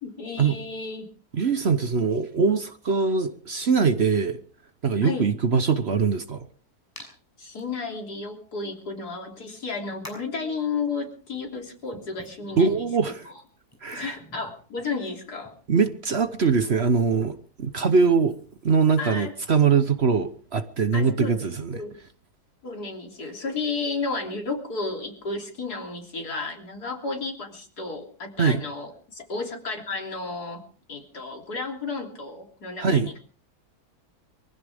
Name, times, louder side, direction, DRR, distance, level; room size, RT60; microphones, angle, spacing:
voice 1, 0.0-1.1 5.0-5.3 7.4-12.9 13.9-15.5 19.0-19.3 20.9-22.0 22.6-30.6 30.9-33.2, left 4 dB, 75° left, 3.8 m, -32 dB
voice 2, 1.3-4.4 4.8-6.5 12.6-13.3 13.8-14.1 15.7-18.4 18.6-21.8 28.4-28.6 32.8-33.1, right 5 dB, 50° right, 1.1 m, -22 dB
Hands, 7.0-7.1 7.6-7.7 8.9-9.0 10.0-10.4 11.3-16.1 16.5-19.8, equal, 10° left, 5.9 m, -49 dB
24.0 x 15.5 x 3.5 m
omnidirectional pair, 1.7 m